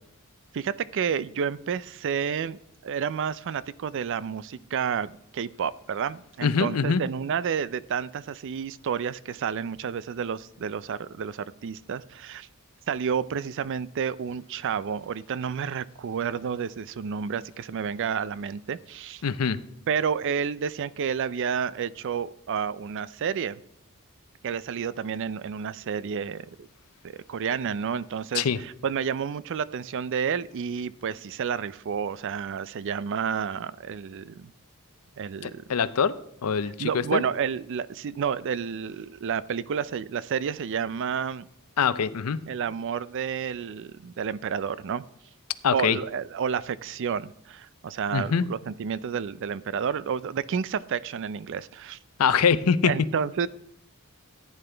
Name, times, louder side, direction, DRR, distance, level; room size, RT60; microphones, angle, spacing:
voice 1, 0.5-12.5 12.9-19.2 19.9-23.6 24.4-26.7 27.0-34.5 35.2-35.6 36.8-41.4 42.4-45.0 45.7-52.0 52.8-53.5, right 7 dB, 55° right, 18 dB, 0.4 m, -30 dB
voice 2, 6.4-7.0 19.2-19.6 28.3-28.6 35.4-36.1 36.4-37.2 41.8-42.4 45.6-46.0 48.1-48.4 52.2-52.9, left 6 dB, 75° left, 15 dB, 0.6 m, -23 dB
14.5 x 9.6 x 3.4 m, 0.73 s
head